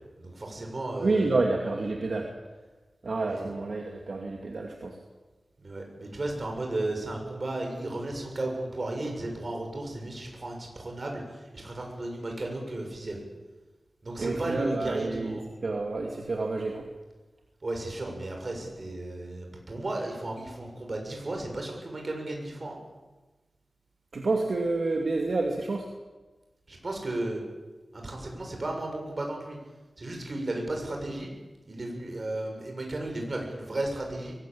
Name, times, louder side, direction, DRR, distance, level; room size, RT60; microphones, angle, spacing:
voice 1, 0.2-1.4 3.2-3.5 5.6-13.2 14.0-15.4 17.6-22.8 26.7-27.4 27.9-29.6 30.0-31.3 31.7-34.4, right 2 dB, 45° right, 2 dB, 7.0 m, -34 dB
voice 2, 1.0-2.3 3.0-5.0 14.2-16.9 24.1-25.9, right 3 dB, 65° right, 1 dB, 2.6 m, -29 dB
23.0 x 18.5 x 8.7 m, 1.2 s
wide cardioid pair, 105°, 0 cm